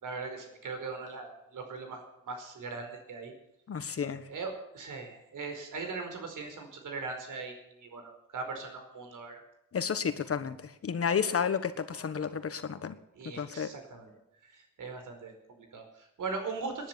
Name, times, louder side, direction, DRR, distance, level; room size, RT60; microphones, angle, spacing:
voice 1, 0.0-3.3 4.2-9.4 13.1-14.1 14.5-16.9, right 4 dB, 70° right, 5 dB, 4.8 m, -40 dB
voice 2, 3.7-4.2 9.7-12.9 13.4-13.7, left 7 dB, 45° left, 11 dB, 1.4 m, -31 dB
19.0 x 10.0 x 7.0 m, 0.85 s
cardioid pair, 110°, 32 cm